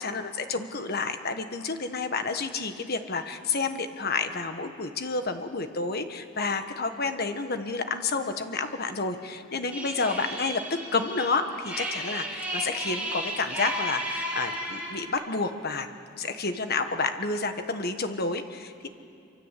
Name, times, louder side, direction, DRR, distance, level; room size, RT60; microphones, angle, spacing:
voice 1, 0.0-15.9 16.2-18.9, left 4 dB, 50° left, 8 dB, 1.4 m, -30 dB
sound 1, 9.7-15.0, right 1 dB, 5° right, 4.3 m, -34 dB
25.5 x 24.5 x 8.4 m, 2.4 s
head